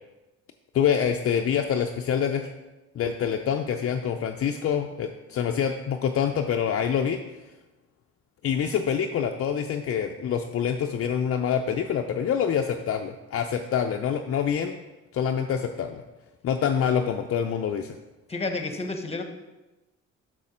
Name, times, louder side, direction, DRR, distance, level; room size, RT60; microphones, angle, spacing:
voice 1, 0.7-2.5 3.0-7.2 8.4-14.8 15.1-16.0 16.4-18.0, left 8 dB, 50° left, 4 dB, 0.5 m, -26 dB
voice 2, 18.3-19.2, left 3 dB, 20° left, 5 dB, 1.0 m, -30 dB
6.4 x 6.3 x 4.3 m, 1.1 s
cardioid pair, 90°, 30 cm